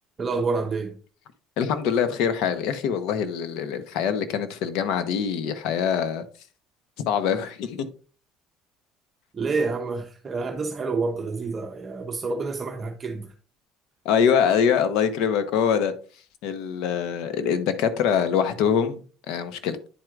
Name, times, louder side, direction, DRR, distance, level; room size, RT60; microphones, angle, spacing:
voice 1, 0.2-1.0 9.3-13.3, right 4 dB, 30° right, 0.7 m, -28 dB
voice 2, 1.6-6.2 7.0-7.9 14.0-15.9 16.4-19.8, left 7 dB, 75° left, 0.8 m, -24 dB
10.0 x 4.5 x 2.4 m
supercardioid pair, 105°, 0 cm